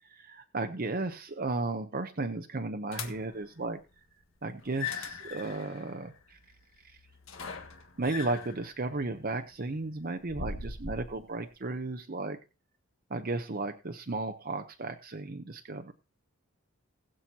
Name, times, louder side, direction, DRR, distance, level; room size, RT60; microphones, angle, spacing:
voice 1, 0.1-3.8 4.4-6.1 8.0-12.4 13.1-15.9, right 3 dB, 45° right, 7 dB, 0.8 m, -34 dB
sound 1, 2.9-3.4 4.6-11.2, left 5 dB, 70° left, 1.7 m, -41 dB
20.5 x 7.6 x 2.8 m, 0.31 s
head